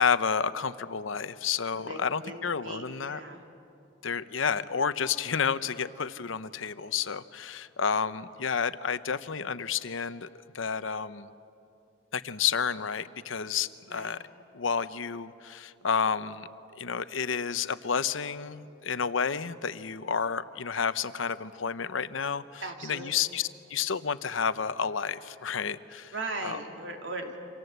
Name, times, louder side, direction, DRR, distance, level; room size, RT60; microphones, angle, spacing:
voice 1, 0.0-3.2 4.0-10.3 10.5-11.3 12.1-14.2 14.5-16.5 16.8-26.1 26.4-26.6, left 6 dB, 80° left, 13 dB, 0.8 m, -30 dB
voice 2, 1.7-3.4 13.9-14.1 22.6-23.3 26.1-27.4, right 2 dB, 70° right, 3 dB, 3.2 m, -39 dB
28.5 x 25.5 x 8.1 m, 2.7 s
head